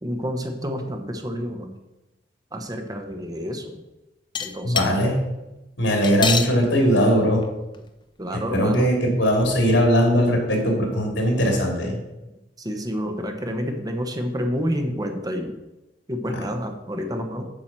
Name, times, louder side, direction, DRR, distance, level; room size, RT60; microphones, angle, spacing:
voice 1, 0.0-1.7 2.5-3.8 4.4-5.1 8.2-8.9 12.6-15.5 16.1-17.5, equal, 20° right, 4 dB, 1.0 m, -29 dB
sound 1, 4.3-4.9 6.0-6.5 7.4-7.5 7.7-7.8 8.7-8.8, left 5 dB, 25° left, 0.6 m, -24 dB
voice 2, 4.6-5.2 5.8-7.4 8.3-12.0, equal, 85° left, 1 dB, 2.8 m, -20 dB
8.7 x 4.7 x 7.4 m, 0.99 s
head